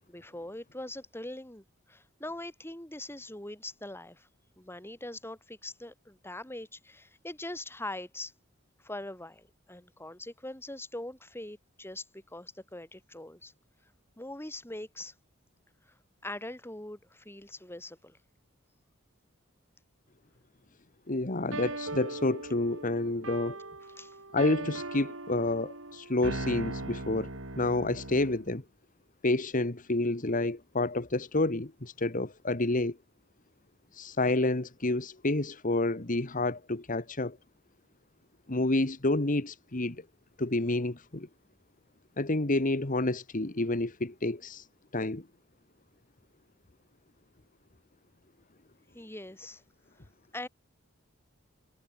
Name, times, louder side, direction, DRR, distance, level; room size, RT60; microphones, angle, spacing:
voice 1, 0.1-4.3 4.6-8.3 8.8-13.5 14.2-15.1 15.9-16.0 16.2-18.2 24.0-24.2 48.9-49.6 50.3-50.5, left 1 dB, 10° left, 7.4 m, -42 dB
voice 2, 21.1-23.6 24.3-27.3 27.6-28.6 29.2-33.0 34.0-37.4 38.5-40.0 40.4-41.3 42.2-44.6 44.9-45.2, left 2 dB, 40° left, 1.6 m, -29 dB
sound 1, 21.5-28.5, right 2 dB, 75° right, 5.0 m, -39 dB
head